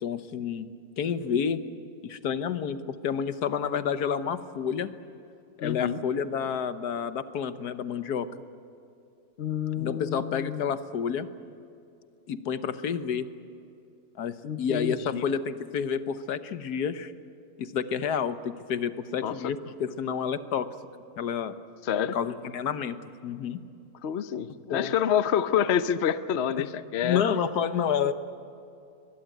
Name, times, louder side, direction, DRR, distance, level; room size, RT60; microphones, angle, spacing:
voice 1, 0.0-0.7 1.0-1.6 2.0-4.9 5.6-8.3 9.8-11.3 12.3-13.3 14.2-17.1 17.6-20.7 21.2-21.6 22.0-23.0 23.2-23.6 24.7-24.9 27.0-28.1, left 7 dB, 70° left, 11 dB, 1.5 m, -29 dB
voice 2, 5.6-6.0 9.4-10.7 14.4-15.3 19.2-19.5 21.8-22.2 24.0-27.2, left 9 dB, 55° left, 12 dB, 0.8 m, -28 dB
22.0 x 21.5 x 9.2 m, 2.6 s
omnidirectional pair, 1.8 m